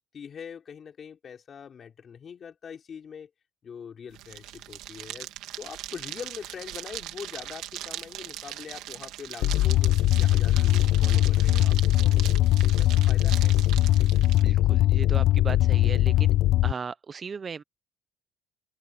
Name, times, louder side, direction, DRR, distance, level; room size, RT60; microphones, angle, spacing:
voice 1, 0.0-3.3 3.6-5.3 5.6-13.7, left 7 dB, 35° left, 4.1 m, -43 dB
sound 1, 4.1-14.4, right 14 dB, 80° right, 2.5 m, -40 dB
sound 2, 9.4-16.7, left 15 dB, 65° left, 0.3 m, -21 dB
voice 2, 14.4-16.3 16.6-17.6, right 5 dB, 30° right, 0.6 m, -36 dB
cardioid pair, 145°, 0 cm